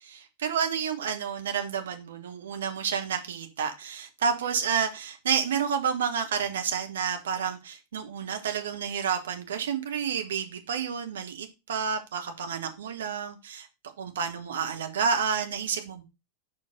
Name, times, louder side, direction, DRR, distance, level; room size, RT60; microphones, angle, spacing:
voice 1, 0.0-13.7 14.0-16.0, right 7 dB, 60° right, 1.1 m, -30 dB
5.2 x 4.5 x 5.2 m
figure-of-eight pair, 90°, 0 cm